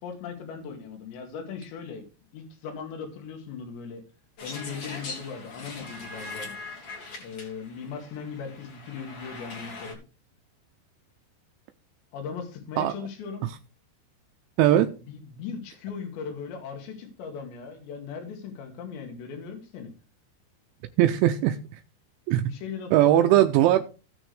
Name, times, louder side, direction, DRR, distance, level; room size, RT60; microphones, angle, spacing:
voice 1, 0.0-2.1 2.3-4.0 4.4-6.6 7.2-10.0 12.1-13.5 15.1-19.9 22.4-23.8, left 6 dB, 70° left, 3 dB, 4.2 m, -38 dB
sound 1, 4.4-9.9, left 3 dB, 40° left, 2.4 m, -41 dB
voice 2, 14.6-14.9 21.0-21.6 22.3-22.4 22.9-23.8, right 13 dB, 85° right, 7 dB, 2.9 m, -19 dB
17.5 x 6.2 x 3.3 m, 0.34 s
omnidirectional pair, 5.5 m